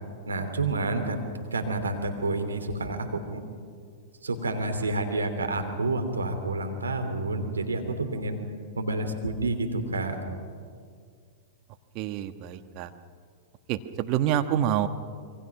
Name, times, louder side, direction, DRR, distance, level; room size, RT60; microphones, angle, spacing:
voice 1, 0.3-1.2 1.5-3.4 4.2-8.4 8.8-10.2, right 2 dB, 90° right, 6 dB, 2.9 m, -29 dB
voice 2, 11.9-12.9 13.7-14.9, right 11 dB, 45° right, 9 dB, 1.4 m, -27 dB
27.0 x 23.5 x 6.0 m, 2.1 s
hypercardioid pair, 105°, 0 cm